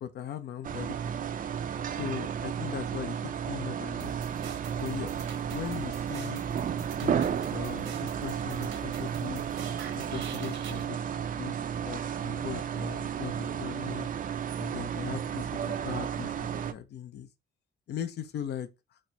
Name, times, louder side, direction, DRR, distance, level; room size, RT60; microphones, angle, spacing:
voice 1, 0.0-1.3 1.9-4.1 4.8-5.2 5.5-6.4 7.0-9.4 9.9-11.6 11.8-14.1 14.6-17.3 17.9-18.7, left 9 dB, 60° left, 0.5 m, -39 dB
sound 1, 0.6-16.7, right 8 dB, 45° right, 0.5 m, -33 dB
sound 2, 4.0-10.8, right 7 dB, 65° right, 1.0 m, -45 dB
4.2 x 2.0 x 4.3 m
cardioid pair, 90°, 20 cm